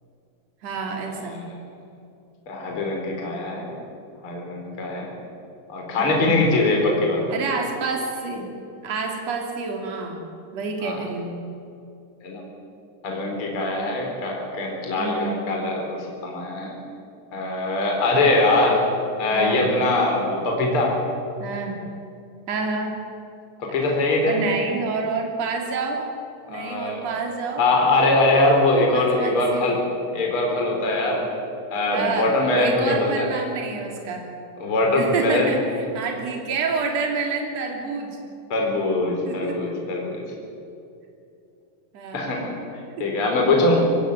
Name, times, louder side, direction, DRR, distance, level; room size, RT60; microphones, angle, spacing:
voice 1, 0.6-1.4 6.0-6.3 7.3-8.5 8.8-10.2 10.5-11.3 15.0-15.4 19.3-19.7 21.4-21.9 22.5-22.9 23.8-26.1 26.5-27.6 28.9-29.8 31.9-32.3 32.6-34.3 34.9-38.2 39.3-39.6 41.9-42.4 43.0-43.2, right 4 dB, 40° right, 2 dB, 3.8 m, -28 dB
voice 2, 2.5-3.7 4.2-5.1 5.7-7.2 10.8-11.0 12.2-12.4 13.0-16.8 17.3-18.8 19.2-20.9 23.6-24.4 26.5-27.0 27.6-29.8 30.1-31.2 31.7-33.3 34.6-35.5 38.5-40.2 42.1-42.5 43.0-43.8, left 2 dB, 30° left, 0 dB, 4.5 m, -22 dB
23.5 x 17.0 x 9.5 m, 2.6 s
omnidirectional pair, 5.1 m